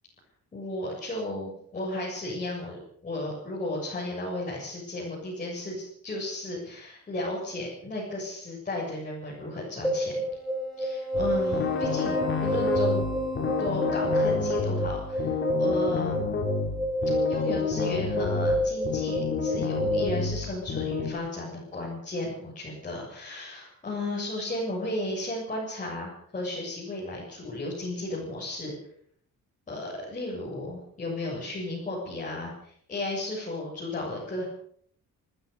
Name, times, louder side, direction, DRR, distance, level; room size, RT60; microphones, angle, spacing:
voice 1, 0.5-10.1 10.8-13.0 13.6-16.1 17.3-28.7 29.7-34.4, left 1 dB, 25° left, -6 dB, 7.9 m, -34 dB
sound 1, 9.8-20.0, equal, ahead, 7.5 m, -29 dB
sound 2, 11.1-21.1, left 5 dB, 40° left, 4.6 m, -30 dB
28.0 x 15.0 x 7.0 m, 0.64 s
cardioid pair, 175°, 30 cm